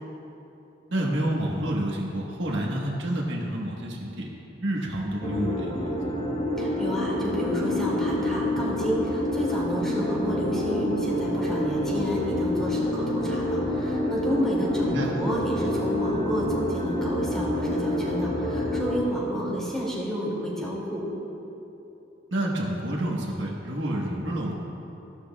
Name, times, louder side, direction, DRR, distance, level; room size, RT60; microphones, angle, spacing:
voice 1, 0.9-4.3 4.6-5.9 14.8-15.1 22.3-24.5, right 1 dB, 75° right, -2 dB, 1.4 m, -29 dB
sound 1, 5.2-19.0, left 1 dB, 40° left, 2.4 m, -27 dB
voice 2, 6.6-21.0, equal, 5° left, -6 dB, 2.4 m, -30 dB
14.5 x 12.0 x 2.4 m, 3.0 s
head